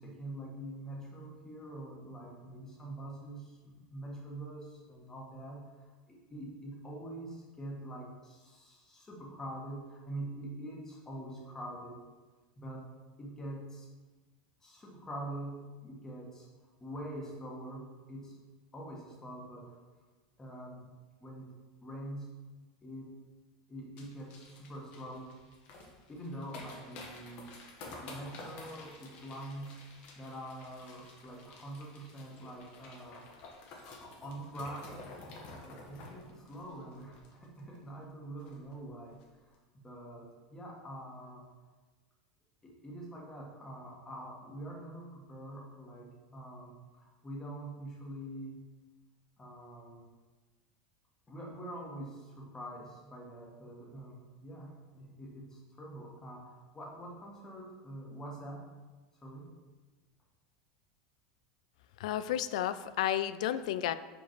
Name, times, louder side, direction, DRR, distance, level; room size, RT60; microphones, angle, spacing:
voice 1, 0.0-12.0 12.6-12.9 13.2-13.9 14.6-16.5 16.8-18.4 18.7-19.8 20.4-20.9 21.2-21.5 21.8-22.4 22.8-23.2 23.7-25.3 26.1-27.6 28.0-33.2 33.7-35.0 35.7-41.4 42.6-48.6 49.4-50.0 51.3-58.7 59.2-59.5, right 1 dB, 15° left, -2 dB, 1.4 m, -45 dB
sound 1, 24.0-37.8 38.0-38.1 38.4-38.7 39.1-39.2, left 2 dB, 45° left, 1.3 m, -51 dB
voice 2, 62.0-63.9, left 11 dB, 85° left, 14 dB, 0.3 m, -32 dB
5.2 x 5.0 x 4.5 m, 1.3 s
supercardioid pair, 150°, 4 cm